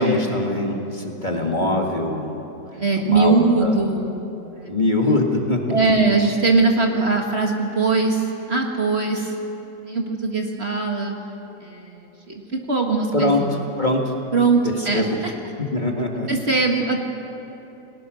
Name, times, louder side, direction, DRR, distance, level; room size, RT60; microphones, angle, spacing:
voice 1, 0.0-2.4 3.0-3.8 4.7-5.8 13.1-14.2 14.6-15.2 15.6-16.3, left 2 dB, 25° left, 1 dB, 1.9 m, -23 dB
voice 2, 1.3-1.7 2.7-4.7 5.7-9.4 9.8-11.1 11.6-13.6 14.3-15.3 16.3-17.0, right 3 dB, 35° right, 1 dB, 1.8 m, -21 dB
29.5 x 19.0 x 6.3 m, 2.9 s
omnidirectional pair, 1.9 m